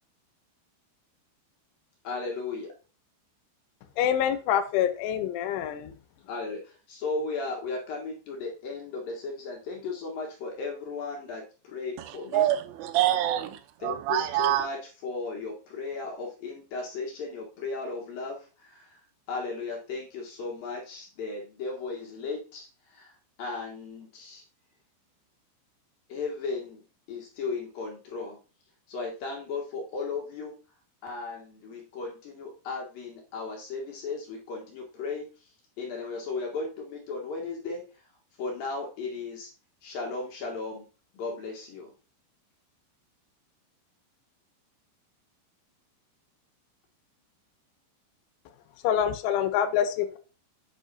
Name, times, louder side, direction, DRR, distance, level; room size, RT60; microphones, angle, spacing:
voice 1, 2.0-2.7 6.2-12.5 13.8-24.4 26.1-26.8 27.1-28.4 28.9-30.6 31.0-38.1 38.4-39.5 39.8-40.9 41.1-41.9, left 4 dB, 65° left, 2.4 m, -36 dB
voice 2, 4.0-5.9 48.8-50.2, left 9 dB, 80° left, 3.2 m, -26 dB
voice 3, 12.3-14.7, right 13 dB, 85° right, 3.2 m, -26 dB
8.2 x 8.2 x 2.7 m
omnidirectional pair, 5.6 m